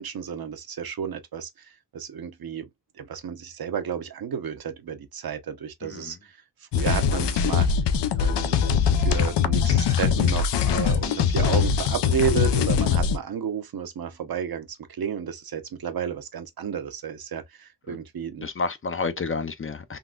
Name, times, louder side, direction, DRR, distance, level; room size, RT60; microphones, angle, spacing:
voice 1, 0.0-2.7 3.0-6.4 6.7-7.7 8.2-18.5, right 8 dB, 60° right, 0.8 m, -32 dB
voice 2, 5.8-6.1 17.9-18.0 18.4-20.0, left 4 dB, 30° left, 0.4 m, -30 dB
sound 1, 6.7-13.2, left 7 dB, 90° left, 0.5 m, -22 dB
3.8 x 2.3 x 2.3 m
cardioid pair, 75°, 41 cm